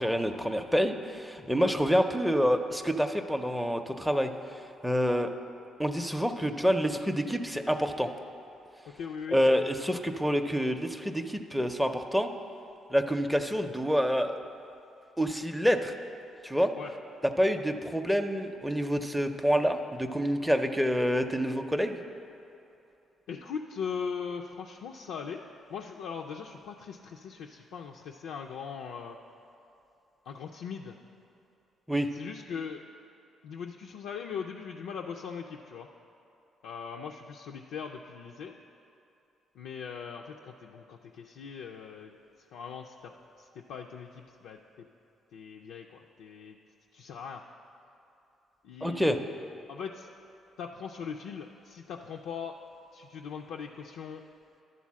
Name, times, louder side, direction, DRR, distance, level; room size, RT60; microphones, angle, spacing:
voice 1, 0.0-4.3 4.8-5.3 5.8-8.1 9.3-12.3 12.9-14.4 15.2-16.0 16.4-16.7 17.4-22.0 31.9-32.1 48.8-49.2, equal, ahead, 6 dB, 0.5 m, -27 dB
voice 2, 8.9-9.6 16.8-16.9 23.3-25.4 25.7-29.2 30.3-31.0 32.1-32.8 33.4-35.9 36.6-38.6 39.5-43.1 43.4-44.9 45.3-46.6 46.9-47.4 48.6-49.2 49.7-50.1 50.6-52.6 52.9-54.2, left 6 dB, 85° left, 0 dB, 0.4 m, -40 dB
11.5 x 4.0 x 7.3 m, 2.7 s
cardioid pair, 90°, 0 cm